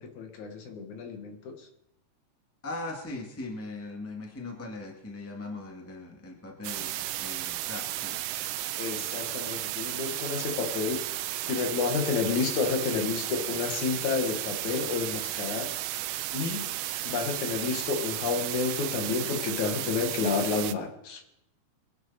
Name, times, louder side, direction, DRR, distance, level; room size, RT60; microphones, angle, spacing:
voice 1, 0.0-1.6 8.8-11.1 11.5-15.7 16.3-16.7 17.0-21.3, left 5 dB, 65° left, 4 dB, 2.8 m, -30 dB
voice 2, 2.6-8.2, left 2 dB, 5° left, 0 dB, 1.5 m, -39 dB
sound 1, 6.6-20.7, right 14 dB, 90° right, 2.3 m, -34 dB
23.0 x 10.5 x 4.2 m, 0.82 s
omnidirectional pair, 3.7 m